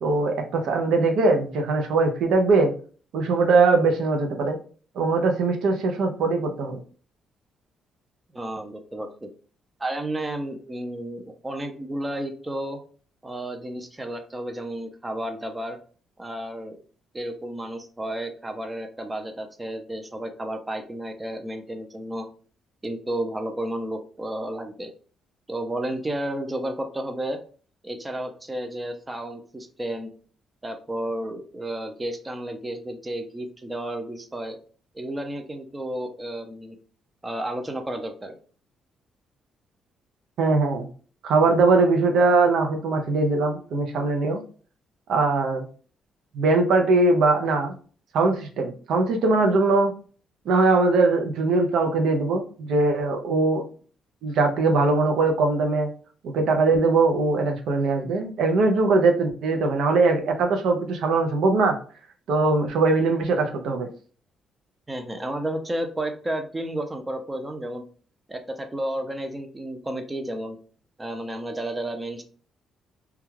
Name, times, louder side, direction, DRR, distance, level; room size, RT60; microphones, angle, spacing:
voice 1, 0.0-2.7 3.1-4.6 5.0-6.8 40.4-40.9 41.2-44.4 45.1-45.7 46.3-47.7 48.1-49.9 50.5-53.6 54.2-55.9 56.2-61.8 62.3-63.9, right 3 dB, 75° right, 4 dB, 0.5 m, -21 dB
voice 2, 8.3-9.3 9.8-12.8 13.2-15.8 16.2-16.8 17.1-22.3 22.8-24.9 25.5-27.4 27.8-30.1 30.6-34.6 34.9-36.8 37.2-38.3 64.9-67.8 68.3-70.6 71.0-72.2, right 1 dB, 15° right, 5 dB, 0.5 m, -32 dB
2.3 x 2.2 x 3.1 m, 0.41 s
cardioid pair, 90°, 0 cm